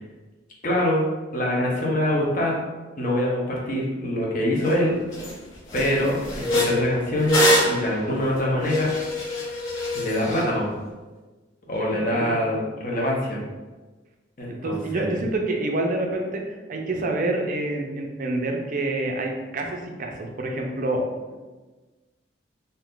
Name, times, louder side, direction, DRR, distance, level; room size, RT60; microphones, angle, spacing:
voice 1, 0.6-2.6 3.0-5.0 5.7-6.2 6.5-8.9 9.9-10.7 11.7-13.4 14.4-15.1, left 1 dB, 45° left, -3 dB, 0.7 m, -24 dB
sound 1, 4.7-4.8 5.1-5.3 5.7-10.4, left 1 dB, 85° left, 1.1 m, -24 dB
voice 2, 12.1-12.4 14.5-21.4, right 2 dB, 45° right, 2 dB, 0.4 m, -27 dB
2.6 x 2.4 x 3.6 m, 1.2 s
head